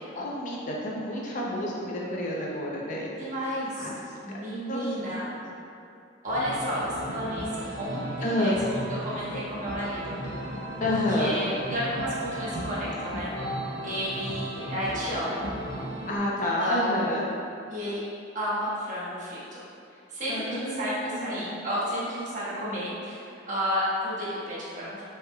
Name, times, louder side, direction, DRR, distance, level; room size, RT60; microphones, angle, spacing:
voice 1, 0.1-3.1 3.8-3.9 4.7-4.8 8.2-8.6 10.8-11.4 16.1-17.2 20.3-21.6, left 1 dB, 40° left, -3 dB, 0.5 m, -29 dB
voice 2, 3.2-3.9 4.2-5.3 6.2-10.2 10.8-13.3 13.8-15.5 16.6-17.1 17.7-18.0 18.3-19.6 20.1-25.0, equal, 40° right, -8 dB, 1.1 m, -32 dB
sound 1, 6.3-16.2, right 1 dB, 75° right, 0.8 m, -35 dB
5.7 x 3.5 x 2.2 m, 2.6 s
head